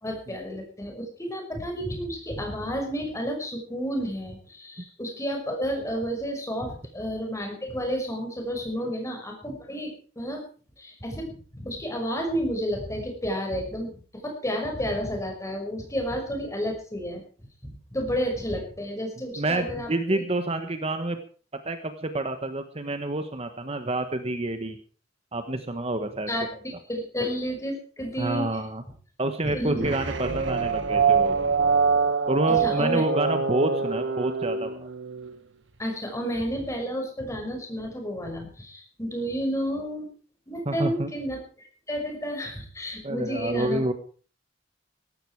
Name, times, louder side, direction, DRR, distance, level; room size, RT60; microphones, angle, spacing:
voice 1, 0.0-10.4 10.8-17.2 17.6-20.2 26.3-26.5 26.9-28.5 29.4-29.9 32.6-33.0 35.8-40.1 40.5-43.8, equal, 15° left, 3 dB, 5.9 m, -31 dB
voice 2, 19.4-21.2 21.6-24.8 25.3-26.3 28.2-28.8 29.2-31.4 32.3-34.9 40.6-41.1 43.0-43.9, right 2 dB, 35° right, 8 dB, 1.4 m, -28 dB
sound 1, 29.7-35.3, right 5 dB, 70° right, 1.6 m, -25 dB
17.5 x 14.5 x 4.8 m, 0.41 s
head